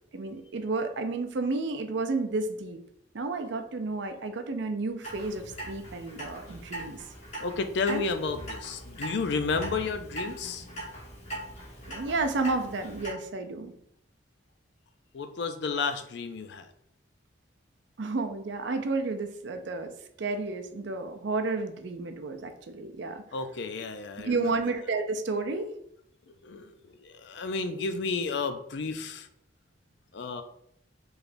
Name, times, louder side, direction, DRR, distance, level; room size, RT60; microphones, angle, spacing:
voice 1, 0.1-2.8 3.1-7.0 7.9-8.0 11.9-13.7 18.0-23.2 24.2-25.7, right 3 dB, 65° right, 7 dB, 0.5 m, -31 dB
Clock, 5.0-13.1, right 1 dB, 35° left, 1.1 m, -41 dB
voice 2, 7.4-10.6 15.1-16.7 23.3-24.5 26.4-26.7 27.0-29.3 30.1-30.4, left 4 dB, 60° left, 8 dB, 0.4 m, -32 dB
4.9 x 3.1 x 2.6 m, 0.71 s
head